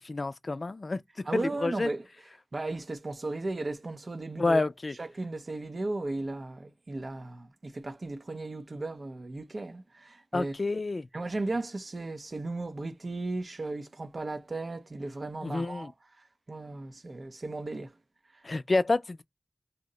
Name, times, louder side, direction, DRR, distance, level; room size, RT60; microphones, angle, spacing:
voice 1, 0.0-1.9 4.4-4.9 10.3-11.1 15.4-15.9 18.4-19.2, left 3 dB, 60° left, 0.3 m, -29 dB
voice 2, 1.3-2.1 2.5-4.6 5.0-10.5 11.1-15.9 16.2-17.9 18.3-18.4, right 2 dB, 60° right, 0.5 m, -36 dB
2.7 x 2.1 x 3.8 m
cardioid pair, 40°, 0 cm